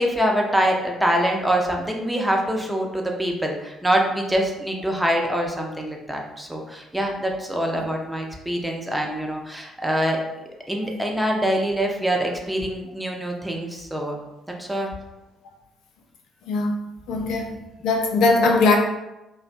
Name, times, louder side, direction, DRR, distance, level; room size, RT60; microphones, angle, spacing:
voice 1, 0.0-10.2 10.7-14.2 14.6-14.9, equal, 5° right, 0 dB, 0.5 m, -24 dB
voice 2, 16.5-17.6 17.8-18.8, left 3 dB, 65° left, 1 dB, 0.3 m, -20 dB
2.5 x 2.2 x 2.5 m, 0.97 s
figure-of-eight pair, 45°, 0 cm